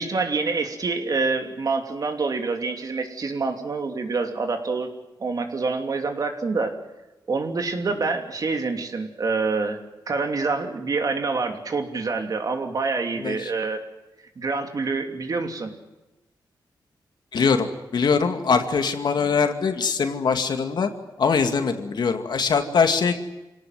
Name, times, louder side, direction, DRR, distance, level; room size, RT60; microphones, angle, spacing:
voice 1, 0.0-4.9 5.2-6.7 7.3-9.8 10.1-13.8 14.4-15.7, right 4 dB, 50° right, 5 dB, 3.0 m, -26 dB
voice 2, 13.2-13.5 17.3-20.9 21.2-23.1, left 5 dB, 65° left, 6 dB, 2.3 m, -22 dB
26.5 x 18.0 x 9.4 m, 1.0 s
wide cardioid pair, 100°, 8 cm